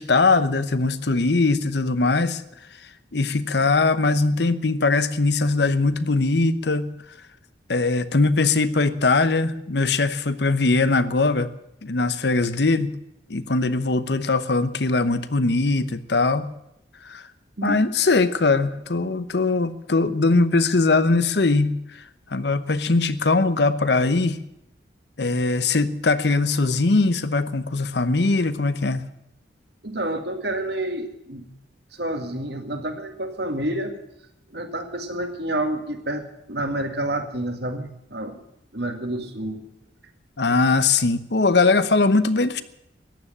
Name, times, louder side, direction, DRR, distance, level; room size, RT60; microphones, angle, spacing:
voice 1, 0.0-2.4 3.1-6.9 7.7-11.5 11.8-12.9 13.3-16.5 17.0-17.2 17.6-22.0 22.3-24.4 25.2-29.0 40.4-42.6, left 3 dB, 65° left, 13 dB, 0.9 m, -21 dB
voice 2, 29.8-31.5 31.9-34.0 34.5-38.4 38.7-39.7, right 1 dB, 60° right, 6 dB, 2.0 m, -29 dB
14.5 x 10.0 x 9.8 m, 0.83 s
head